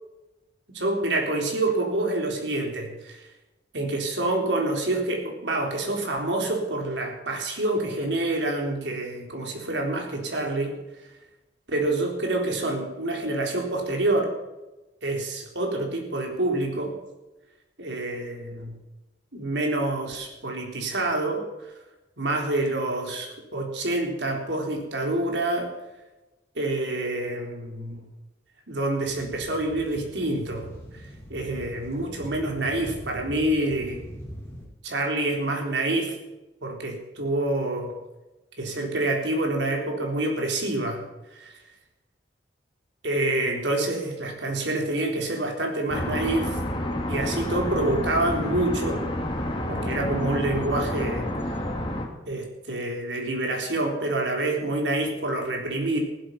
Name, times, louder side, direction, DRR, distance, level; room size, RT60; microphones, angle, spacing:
voice 1, 0.7-3.2 3.7-10.7 11.7-14.3 15.0-16.9 17.8-18.8 19.3-21.4 22.2-25.7 26.6-28.1 28.7-31.0 31.3-34.0 34.8-36.1 36.6-37.9 38.6-41.0 43.0-46.6 47.1-49.0 49.7-51.3 52.3-56.0, right 2 dB, 90° right, 2 dB, 3.9 m, -27 dB
sound 1, 29.0-34.7, equal, 15° left, 3.8 m, -42 dB
sound 2, 45.9-52.1, left 1 dB, 30° left, 2.5 m, -29 dB
15.5 x 12.0 x 5.9 m, 1.0 s
head